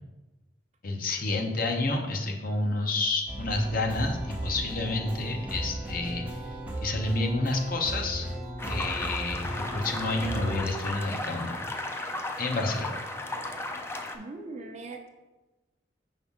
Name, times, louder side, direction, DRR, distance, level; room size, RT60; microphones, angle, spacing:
voice 1, 0.8-6.2 6.8-8.3 8.7-11.6 12.4-13.0, left 2 dB, 55° left, 3 dB, 0.8 m, -29 dB
sound 1, 3.3-10.6, right 1 dB, 10° right, 1.0 m, -36 dB
sound 2, 8.6-14.2, left 2 dB, 15° left, 0.4 m, -35 dB
voice 2, 14.1-15.1, right 3 dB, 40° right, 3 dB, 0.6 m, -40 dB
5.5 x 5.1 x 3.6 m, 1.1 s
head